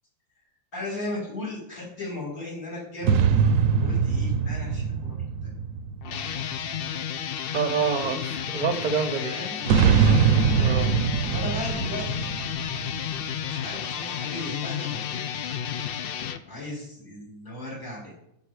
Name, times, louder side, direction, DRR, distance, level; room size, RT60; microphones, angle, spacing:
voice 1, 0.7-3.2 3.8-5.2 5.4-5.6 9.2-10.2 11.3-12.3 13.5-15.0 16.4-18.1, left 2 dB, 60° left, -3 dB, 3.9 m, -36 dB
sound 1, 3.0-6.7 9.6-13.4, right 6 dB, 65° right, 0.9 m, -23 dB
sound 2, 6.0-16.4, left 8 dB, 85° left, 0.5 m, -32 dB
voice 2, 7.5-9.3 10.6-10.9, right 6 dB, 40° right, 9 dB, 0.8 m, -27 dB
13.5 x 5.6 x 4.8 m, 0.83 s
omnidirectional pair, 1.7 m